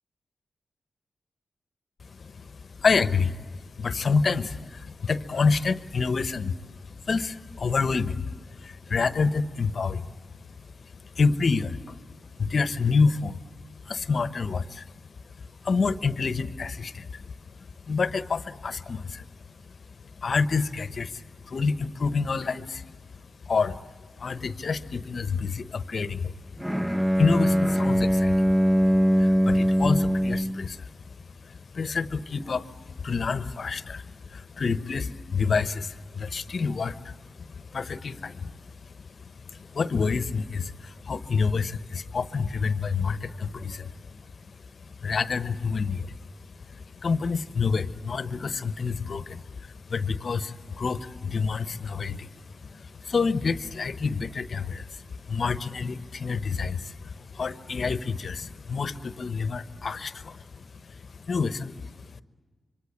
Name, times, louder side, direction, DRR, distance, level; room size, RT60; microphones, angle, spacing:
voice 1, 2.0-12.1 12.4-13.4 13.7-14.9 15.4-19.3 20.0-22.9 23.4-62.2, left 4 dB, 60° left, 13 dB, 1.0 m, -29 dB
Bowed string instrument, 26.6-30.7, equal, 5° right, 0.8 m, -22 dB
26.5 x 23.0 x 8.3 m, 1.5 s
supercardioid pair, 40°, 0 cm